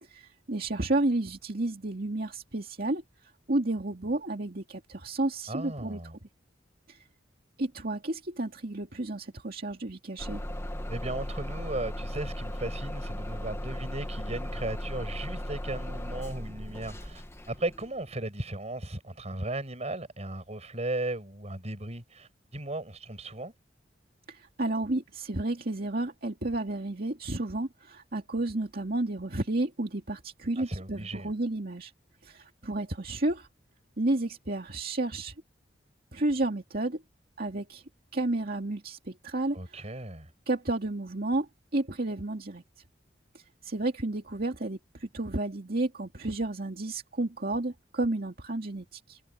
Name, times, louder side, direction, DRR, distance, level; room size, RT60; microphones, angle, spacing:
voice 1, 0.0-6.3 6.9-7.1 7.6-10.4 24.3-31.9 32.2-33.5 34.0-35.3 36.1-37.0 37.4-37.8 38.1-39.9 40.5-42.6 43.3-49.2, right 2 dB, 55° right, 2.3 m, -31 dB
voice 2, 5.5-6.2 10.9-23.5 30.6-31.3 39.5-40.3, right 2 dB, 40° right, 5.8 m, -36 dB
Bus / Engine starting, 10.2-17.9, equal, 15° left, 1.5 m, -36 dB
head